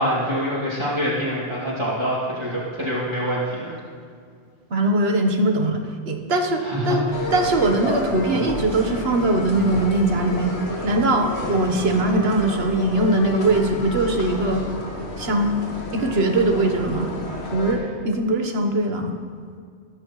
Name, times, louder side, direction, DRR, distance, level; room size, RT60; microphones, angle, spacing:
voice 1, 0.0-3.8 6.6-7.0, equal, 25° right, -10 dB, 3.3 m, -25 dB
voice 2, 4.7-7.0 7.3-10.6 10.8-14.6 15.2-15.5 15.9-17.1 17.5-19.2, right 2 dB, 70° right, 4 dB, 1.5 m, -21 dB
sound 1, 7.1-17.7, left 1 dB, 75° left, 2.1 m, -30 dB
21.5 x 10.5 x 3.2 m, 2.2 s
omnidirectional pair, 1.1 m